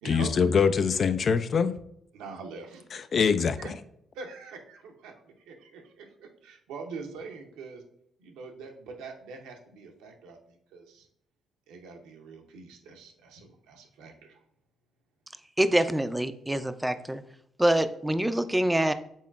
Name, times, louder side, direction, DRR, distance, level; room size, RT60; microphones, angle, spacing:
voice 1, 0.0-1.7 2.9-3.6, left 6 dB, 55° left, 11 dB, 0.3 m, -24 dB
voice 2, 2.1-2.8 3.6-3.7 4.1-7.8 8.2-11.1 11.7-14.4, right 4 dB, 80° right, 3 dB, 0.7 m, -44 dB
voice 3, 15.6-17.2 17.6-18.9, right 1 dB, 10° right, 11 dB, 0.4 m, -25 dB
5.6 x 3.7 x 2.4 m, 0.74 s
supercardioid pair, 55°, 0 cm